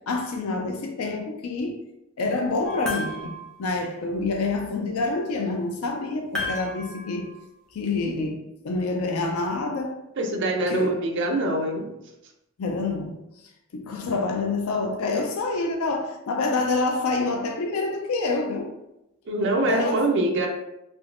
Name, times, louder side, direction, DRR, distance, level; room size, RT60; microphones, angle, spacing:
voice 1, 0.1-1.8 2.2-7.3 7.7-10.0 10.7-11.0 12.6-13.2 13.7-18.7 19.6-20.0, left 3 dB, 75° left, 0.4 m, -27 dB
sound 1, 2.6-3.6 6.3-7.5, left 2 dB, ahead, 0.6 m, -33 dB
voice 2, 10.2-11.9 19.3-20.5, right 2 dB, 55° right, 0.5 m, -24 dB
3.4 x 2.9 x 2.5 m
head